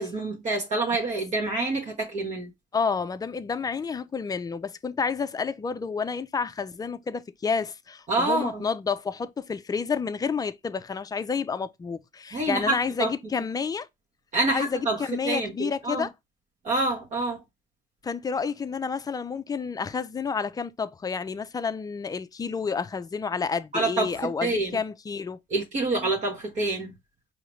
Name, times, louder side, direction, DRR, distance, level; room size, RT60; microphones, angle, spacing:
voice 1, 0.0-2.5 8.1-8.6 12.3-13.1 14.3-16.1 16.6-17.4 23.7-24.7 25.5-26.9, right 2 dB, 45° right, 1.1 m, -27 dB
voice 2, 2.7-13.9 14.5-16.1 18.0-25.4, left 5 dB, 20° left, 0.4 m, -30 dB
4.9 x 2.8 x 3.1 m
cardioid pair, 110°, 17 cm